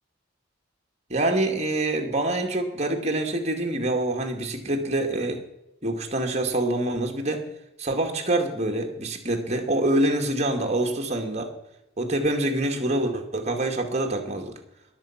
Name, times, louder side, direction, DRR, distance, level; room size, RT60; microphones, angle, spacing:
voice 1, 1.1-5.4 5.8-7.5 7.8-11.5 12.0-14.6, right 1 dB, 35° right, 4 dB, 2.3 m, -26 dB
21.5 x 7.8 x 6.0 m, 0.87 s
head